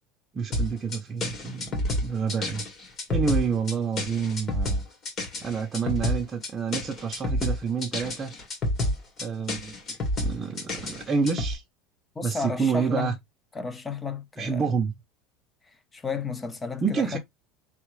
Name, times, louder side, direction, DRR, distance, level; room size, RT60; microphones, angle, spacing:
voice 1, 0.3-2.7 3.1-4.8 5.4-8.3 9.2-9.8 10.2-11.6 12.2-13.1 14.4-14.9 16.8-17.2, right 5 dB, 25° right, 0.7 m, -28 dB
sound 1, 0.5-11.5, left 1 dB, 35° left, 1.8 m, -29 dB
voice 2, 12.2-13.1 13.5-14.7 15.9-17.2, left 5 dB, 15° left, 0.7 m, -32 dB
4.3 x 3.7 x 3.1 m
supercardioid pair, 140°, 0 cm